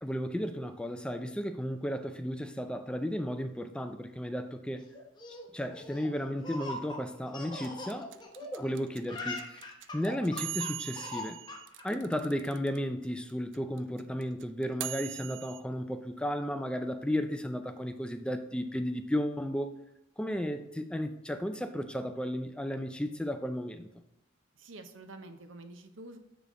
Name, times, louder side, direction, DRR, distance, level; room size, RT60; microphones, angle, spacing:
voice 1, 0.0-4.9 5.5-8.1 8.5-9.6 9.9-11.4 11.8-19.7 20.2-23.9, equal, 5° left, 8 dB, 0.4 m, -34 dB
Laughter, 4.9-8.7 9.0-11.8, left 2 dB, 25° left, 0.9 m, -42 dB
sound 1, 7.6-12.8 13.0-13.1 13.3-15.6, right 13 dB, 70° right, 0.4 m, -40 dB
voice 2, 24.5-26.2, right 2 dB, 90° right, 8 dB, 0.7 m, -48 dB
6.8 x 5.1 x 3.7 m, 0.82 s
head